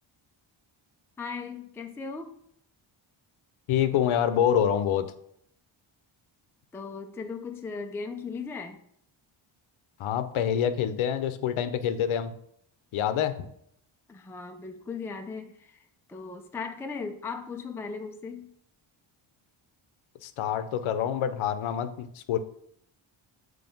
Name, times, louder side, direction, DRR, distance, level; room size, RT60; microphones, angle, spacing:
voice 1, 1.2-2.3 6.7-8.8 14.1-18.5, left 4 dB, 5° left, 4 dB, 0.3 m, -37 dB
voice 2, 3.7-5.1 10.0-12.3 12.9-13.5 20.2-22.4, left 9 dB, 75° left, 11 dB, 0.7 m, -26 dB
7.0 x 3.3 x 5.2 m, 0.71 s
cardioid pair, 140°, 50 cm